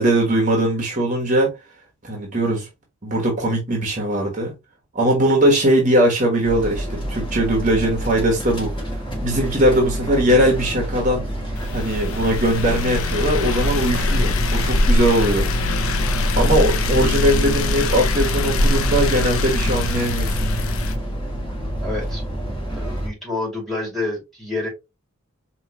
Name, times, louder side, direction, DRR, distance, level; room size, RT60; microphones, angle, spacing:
voice 1, 0.0-1.5 2.0-2.7 3.0-4.5 4.9-8.7 9.2-11.3 11.7-15.5 16.4-20.5, right 1 dB, 40° right, 1.3 m, -20 dB
sound 1, 6.4-23.1, equal, 25° left, 1.9 m, -28 dB
sound 2, 11.6-21.0, left 2 dB, 90° left, 0.6 m, -22 dB
voice 2, 21.8-22.2 22.7-24.7, left 2 dB, ahead, 2.4 m, -28 dB
4.6 x 3.1 x 2.9 m
head